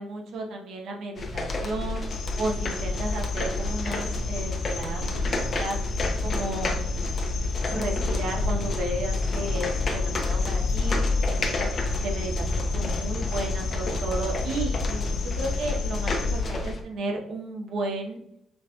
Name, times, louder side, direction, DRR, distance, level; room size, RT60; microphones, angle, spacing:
voice 1, 0.0-2.0 2.4-5.8 6.2-6.8 7.7-11.7 12.0-18.2, right 2 dB, 75° right, 0 dB, 1.0 m, -33 dB
sound 1, 1.2-16.8, left 2 dB, 45° left, 0.8 m, -29 dB
sound 2, 2.1-16.4, left 4 dB, 85° left, 1.1 m, -32 dB
5.6 x 2.9 x 2.4 m, 0.79 s
cardioid pair, 90°, 0 cm